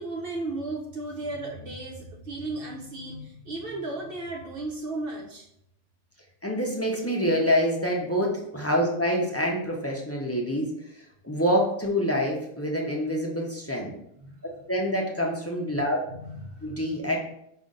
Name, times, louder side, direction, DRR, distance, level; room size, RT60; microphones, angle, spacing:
voice 1, 0.0-5.5 14.2-14.4 15.7-15.8 16.1-16.8, right 2 dB, 60° right, 0 dB, 0.8 m, -35 dB
voice 2, 6.4-10.7 11.2-13.9 14.7-16.0 16.6-17.2, equal, 20° left, -2 dB, 0.4 m, -26 dB
5.2 x 2.5 x 3.7 m, 0.74 s
omnidirectional pair, 1.3 m